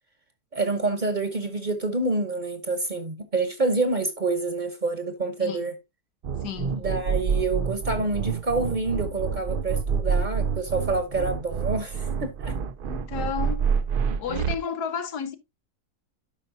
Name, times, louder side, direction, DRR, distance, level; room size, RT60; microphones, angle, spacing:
voice 1, 0.5-5.7 6.7-12.5 14.1-14.2, right 3 dB, 35° right, 0.9 m, -27 dB
sound 1, 6.2-14.6, right 6 dB, 90° right, 0.4 m, -27 dB
voice 2, 6.4-6.8 12.8-13.6 14.2-15.4, left 7 dB, 90° left, 1.5 m, -32 dB
12.0 x 5.2 x 2.7 m
omnidirectional pair, 1.7 m